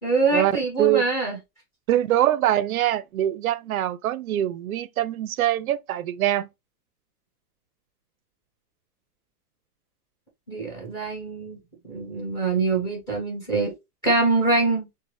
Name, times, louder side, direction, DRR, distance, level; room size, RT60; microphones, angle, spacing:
voice 1, 0.0-1.4 10.5-11.6 11.8-13.7 14.0-14.9, right 3 dB, 10° left, 1.0 m, -24 dB
voice 2, 1.9-6.5, right 12 dB, 65° right, 0.5 m, -23 dB
4.0 x 2.1 x 3.1 m
hypercardioid pair, 175°, 46 cm